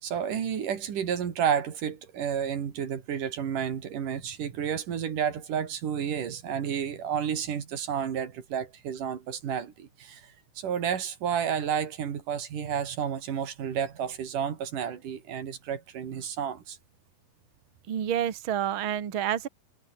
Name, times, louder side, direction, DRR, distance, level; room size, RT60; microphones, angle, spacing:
voice 1, 0.0-16.8, right 8 dB, 90° right, 4.2 m, -31 dB
voice 2, 17.9-19.5, right 10 dB, 45° right, 2.3 m, -28 dB
omnidirectional pair, 3.6 m